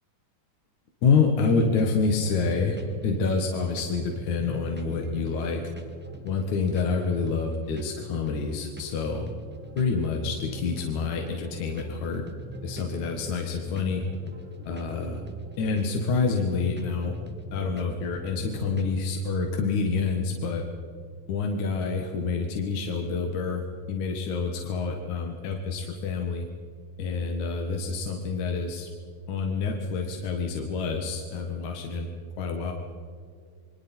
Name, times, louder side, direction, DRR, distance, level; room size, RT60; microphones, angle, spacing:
voice 1, 1.0-5.6 6.2-9.3 9.8-12.2 12.6-14.0 14.7-15.2 15.6-17.1 17.5-20.6 21.3-26.4 27.0-28.9 29.3-32.1 32.4-32.7, left 4 dB, 70° left, 2 dB, 3.0 m, -27 dB
sound 1, 1.8-19.0, right 1 dB, 5° right, 1.0 m, -43 dB
28.5 x 23.5 x 4.4 m, 2.1 s
omnidirectional pair, 3.5 m